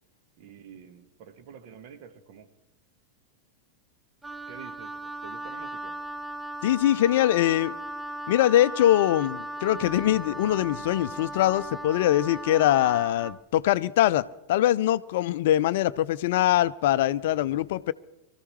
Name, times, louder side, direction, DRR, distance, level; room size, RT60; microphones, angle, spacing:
voice 1, 0.4-2.5 4.5-6.0, right 8 dB, 45° right, 1.4 m, -48 dB
Wind instrument woodwind instrument, 4.2-13.4, right 1 dB, 5° right, 0.5 m, -37 dB
voice 2, 6.6-7.8 8.3-17.9, left 13 dB, 55° left, 0.4 m, -23 dB
sound 1, 9.8-13.8, left 7 dB, 25° left, 1.3 m, -51 dB
24.5 x 14.5 x 3.2 m
figure-of-eight pair, 90°, 0 cm